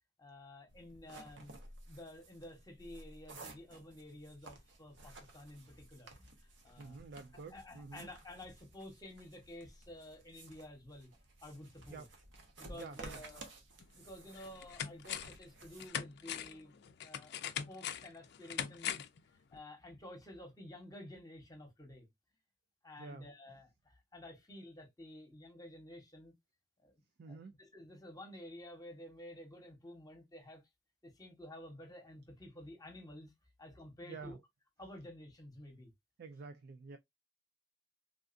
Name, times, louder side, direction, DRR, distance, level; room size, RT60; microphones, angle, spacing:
voice 1, 0.2-1.5 1.9-7.0 7.3-11.1 11.4-12.1 12.6-13.5 13.9-17.4 17.7-19.0 19.5-22.1 22.8-26.3 26.8-27.0 27.3-30.6 31.0-33.3 33.6-34.4 34.8-35.9, left 1 dB, 20° left, 0.9 m, -52 dB
sound 1, 0.7-15.9, right 2 dB, 70° right, 0.9 m, -55 dB
voice 2, 6.8-8.1 11.9-12.1 12.7-13.2 23.0-23.3 27.2-27.5 34.0-34.4 36.2-37.0, right 4 dB, 55° right, 0.3 m, -49 dB
sound 2, 13.8-13.9 14.4-15.4 15.8-19.2 19.5-19.6, left 9 dB, 60° left, 0.4 m, -41 dB
3.5 x 2.3 x 2.5 m
head